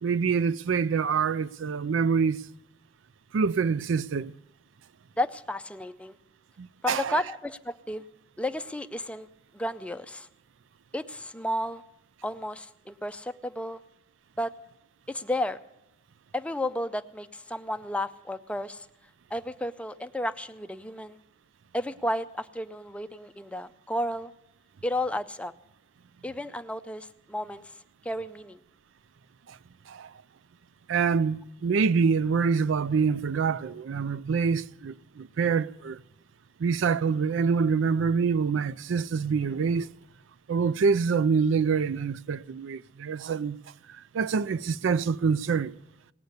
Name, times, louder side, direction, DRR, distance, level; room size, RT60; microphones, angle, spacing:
voice 1, 0.0-2.4 3.3-4.3 6.6-7.2 29.5-29.6 29.9-30.1 30.9-36.0 36.6-39.9 40.5-43.6 43.9-45.8, right 5 dB, 80° right, 0.4 m, -26 dB
voice 2, 5.2-6.2 6.8-8.0 8.4-9.3 9.5-10.3 10.9-11.8 12.2-13.8 14.4-14.5 15.1-15.6 16.3-18.9 19.3-21.2 21.7-24.3 24.8-25.5 26.2-28.6, left 1 dB, 5° left, 0.4 m, -32 dB
18.5 x 8.0 x 6.6 m
head